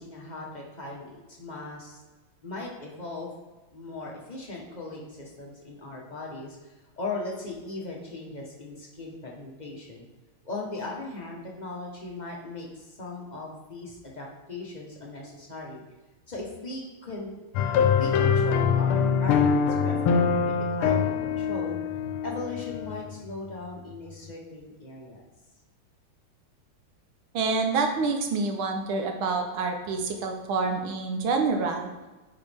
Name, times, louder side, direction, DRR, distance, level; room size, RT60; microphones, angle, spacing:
voice 1, 0.0-2.0 2.4-3.3 3.7-10.0 10.4-15.8 16.3-17.3 17.8-21.8 22.2-25.2, left 2 dB, 30° left, -2 dB, 0.9 m, -38 dB
sound 1, 17.5-23.1, left 6 dB, 85° left, 1.5 m, -24 dB
voice 2, 27.3-31.9, right 4 dB, 75° right, 3 dB, 1.7 m, -27 dB
9.3 x 5.1 x 3.5 m, 1.2 s
omnidirectional pair, 2.3 m